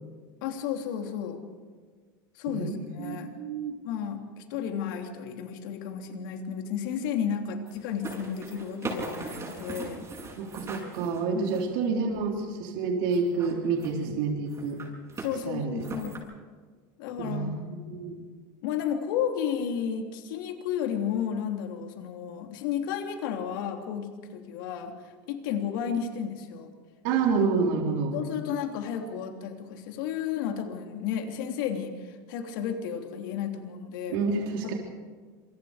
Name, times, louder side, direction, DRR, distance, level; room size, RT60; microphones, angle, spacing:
voice 1, 0.4-1.4 2.3-3.3 3.8-10.1 11.3-11.4 15.2-16.2 17.0-17.5 18.6-24.9 25.3-26.7 28.0-34.2, left 8 dB, 80° left, 4 dB, 3.1 m, -32 dB
voice 2, 2.5-3.8 10.4-14.8 15.5-15.8 17.2-18.2 27.0-28.2 34.1-34.7, right 4 dB, 70° right, 1 dB, 3.8 m, -28 dB
sound 1, 7.7-11.8 13.1-14.1 14.5-15.3 15.8-16.2, right 3 dB, 25° right, 7.2 m, -39 dB
27.0 x 23.5 x 5.1 m, 1.5 s
supercardioid pair, 125°, 11 cm